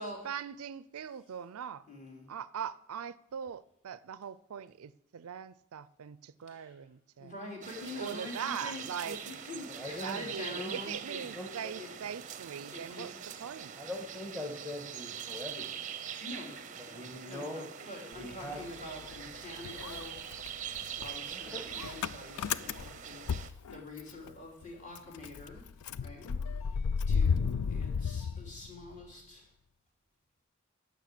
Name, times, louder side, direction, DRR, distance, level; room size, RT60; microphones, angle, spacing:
voice 1, 0.2-1.8 2.3-7.3 8.0-9.2 10.0-13.1 13.4-13.7, right 8 dB, 75° right, 0.4 m, -41 dB
voice 2, 1.9-2.3 6.5-6.8 7.2-11.2 11.8-11.9 12.7-13.1 16.2-25.6 26.0-29.5, left 1 dB, 35° left, 3.0 m, -46 dB
sound 1, 7.6-23.5, right 8 dB, 35° right, 0.6 m, -43 dB
voice 3, 9.7-10.8 11.2-11.8 13.7-15.9 16.8-18.6 21.3-21.9, left 1 dB, 5° left, 1.4 m, -43 dB
Motor vehicle (road) / Engine starting, 18.1-19.3 19.6-24.3 24.6-24.7 24.9-29.1, left 6 dB, 85° left, 0.4 m, -34 dB
11.5 x 6.5 x 8.3 m
head